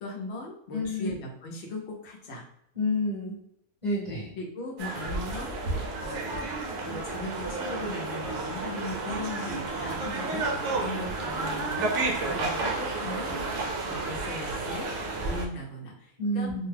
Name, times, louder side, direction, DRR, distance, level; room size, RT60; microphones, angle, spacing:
voice 1, 0.0-2.4 4.4-6.5 6.8-13.4 13.8-14.9 15.2-16.5, left 2 dB, 55° left, -1 dB, 0.9 m, -39 dB
voice 2, 0.7-1.1 2.7-3.4 3.8-4.3 16.2-16.7, left 1 dB, 30° left, -9 dB, 1.1 m, -29 dB
sound 1, 4.8-15.4, right 3 dB, 60° right, 0.9 m, -31 dB
2.7 x 2.2 x 3.3 m, 0.73 s
omnidirectional pair, 1.6 m